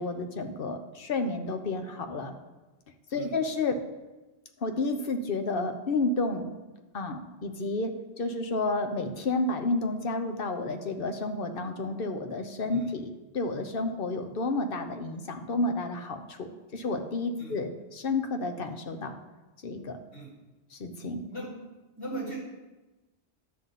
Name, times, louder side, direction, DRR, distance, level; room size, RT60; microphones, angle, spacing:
voice 1, 0.0-2.3 3.1-3.8 4.6-6.5 6.9-19.2 19.6-20.0 20.7-21.2, left 3 dB, 60° left, 7 dB, 1.1 m, -31 dB
voice 2, 22.0-22.4, right 2 dB, 85° left, -9 dB, 4.2 m, -38 dB
11.5 x 4.0 x 7.4 m, 1.1 s
omnidirectional pair, 1.1 m